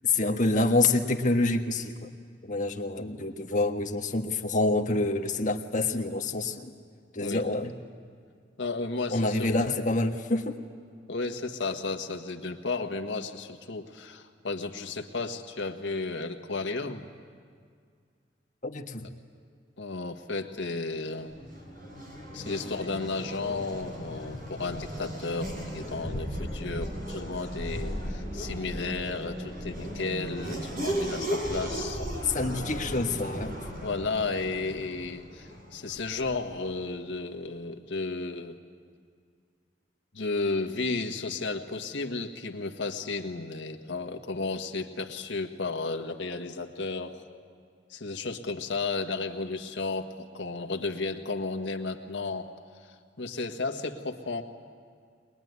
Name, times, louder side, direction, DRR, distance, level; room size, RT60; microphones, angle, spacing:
voice 1, 0.0-2.1 2.5-6.7 7.1-7.7 9.1-10.6 18.6-19.1 32.2-33.6, left 2 dB, 45° left, 4 dB, 1.5 m, -27 dB
voice 2, 8.6-9.5 11.1-17.1 19.8-21.4 22.3-32.0 33.8-38.6 40.1-47.2 47.9-54.4, left 3 dB, 85° left, 4 dB, 1.6 m, -33 dB
Race car auto racing / Accelerating revving vroom, 20.9-36.5, equal, 50° right, 5.5 m, -36 dB
22.5 x 21.5 x 9.6 m, 2.1 s
head